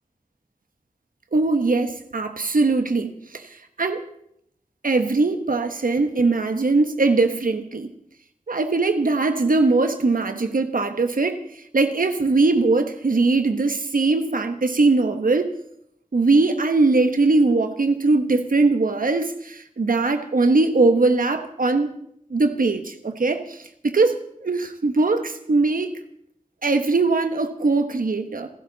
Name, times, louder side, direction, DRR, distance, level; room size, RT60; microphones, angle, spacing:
voice 1, 1.3-3.5 3.8-4.0 4.8-7.9 8.5-11.4 11.7-15.6 16.1-21.9 22.3-25.9 26.6-28.5, right 3 dB, 80° right, 7 dB, 1.2 m, -21 dB
27.0 x 12.0 x 4.0 m, 0.72 s
wide cardioid pair, 45°, 14 cm